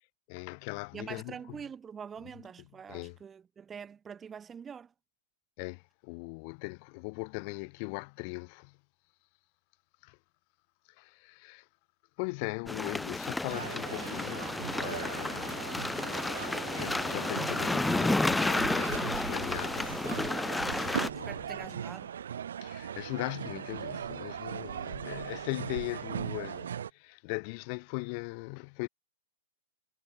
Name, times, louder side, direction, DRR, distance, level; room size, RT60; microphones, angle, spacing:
voice 1, 0.3-1.6 2.9-3.2 5.6-8.8 10.0-10.2 11.0-11.7 12.2-15.8 16.2-20.0 20.7-21.6 22.6-28.9, left 35 dB, 45° left, 0.9 m, -39 dB
voice 2, 0.9-4.9 20.5-20.9 21.3-22.1, right 7 dB, 20° right, 1.1 m, -45 dB
sound 1, 12.7-21.1, left 2 dB, 5° left, 0.3 m, -31 dB
sound 2, 13.5-26.9, right 9 dB, 70° right, 0.7 m, -39 dB
hypercardioid pair, 115°, 0 cm